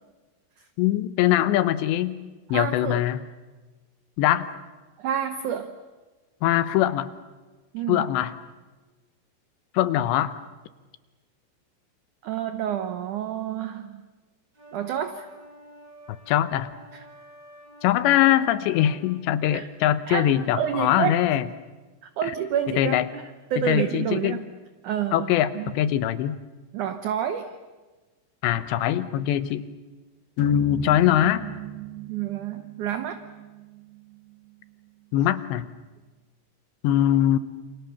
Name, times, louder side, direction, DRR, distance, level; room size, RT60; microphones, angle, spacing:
voice 1, 0.8-2.2 2.5-3.2 4.2-4.5 6.4-7.1 7.9-8.3 9.7-10.4 16.3-16.7 17.8-21.4 22.8-23.1 23.6-24.4 25.1-26.4 28.4-29.6 30.4-31.4 35.1-35.7 36.8-37.4, left 12 dB, 85° left, 13 dB, 3.2 m, -22 dB
voice 2, 2.5-3.0 5.0-5.7 7.7-8.1 12.2-14.0 14.7-15.3 16.9-17.0 19.5-19.7 20.1-21.2 22.0-23.2 23.5-24.4 24.8-25.7 26.7-27.6 32.1-33.2 35.2-35.3, right 9 dB, 90° right, 9 dB, 1.7 m, -29 dB
sound 1, 14.5-19.0, equal, 25° right, 5.4 m, -48 dB
sound 2, 30.4-34.7, right 11 dB, 65° right, 2.7 m, -39 dB
28.5 x 27.5 x 7.1 m, 1.3 s
omnidirectional pair, 5.0 m